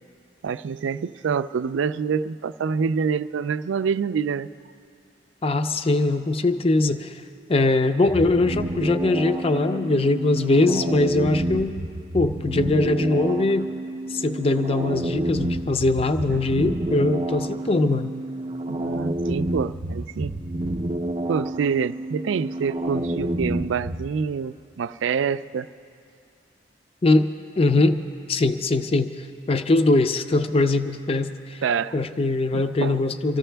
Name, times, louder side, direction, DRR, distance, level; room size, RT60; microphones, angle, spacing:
voice 1, 0.4-4.5 16.3-16.5 18.7-20.3 21.3-25.7 31.6-32.0 32.5-33.0, right 6 dB, 90° right, 14 dB, 0.4 m, -26 dB
voice 2, 5.4-7.2 7.5-11.8 12.1-13.7 14.1-18.2 27.0-27.3 27.6-28.0 28.3-31.6 31.9-33.4, left 2 dB, 30° left, 9 dB, 0.5 m, -21 dB
sound 1, 8.0-24.1, right 1 dB, 30° right, 0.5 m, -29 dB
25.0 x 14.0 x 3.4 m, 2.4 s
head